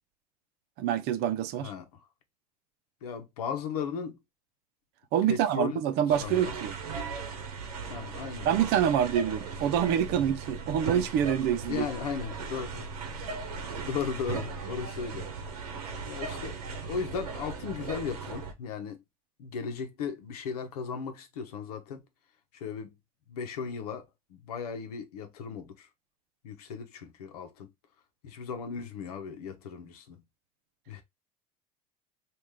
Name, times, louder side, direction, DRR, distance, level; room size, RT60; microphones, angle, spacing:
voice 1, 0.8-1.7 5.1-6.7 8.5-11.9, right 9 dB, 60° right, 0.6 m, -26 dB
voice 2, 1.6-2.1 3.0-4.2 5.3-6.5 7.9-8.5 11.7-12.9 13.8-15.3 16.0-16.6 16.9-19.0 19.4-22.0 22.5-23.0 23.3-24.0 24.3-25.9 26.4-27.7 28.2-30.2 30.9-31.0, left 6 dB, 85° left, 0.8 m, -36 dB
sound 1, 6.1-18.5, right 4 dB, 90° right, 0.9 m, -38 dB
3.1 x 2.5 x 3.6 m
hypercardioid pair, 85°, 19 cm